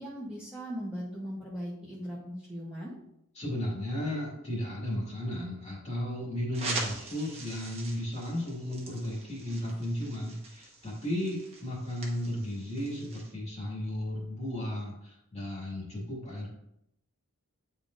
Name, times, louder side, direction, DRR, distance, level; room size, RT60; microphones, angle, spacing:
voice 1, 0.0-2.9, equal, 5° right, -8 dB, 0.9 m, -39 dB
voice 2, 3.4-16.5, left 1 dB, 30° left, -5 dB, 1.9 m, -34 dB
Record Player Needle is dropped & Vinyl crackling, 6.5-13.3, right 3 dB, 25° right, 1.1 m, -42 dB
9.8 x 3.8 x 2.5 m, 0.80 s
head